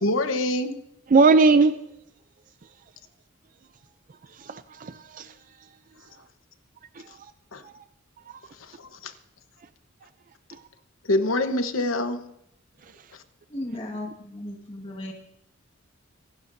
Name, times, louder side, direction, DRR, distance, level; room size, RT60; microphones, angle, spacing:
voice 1, 0.0-0.7 7.5-7.6 8.6-9.1 11.0-12.2 13.1-13.2, left 1 dB, 80° left, 1.1 m, -25 dB
voice 2, 1.1-1.8 4.5-5.3, right 4 dB, 40° right, 0.4 m, -18 dB
voice 3, 13.5-15.1, left 1 dB, 30° left, 1.7 m, -35 dB
25.5 x 11.5 x 2.7 m
head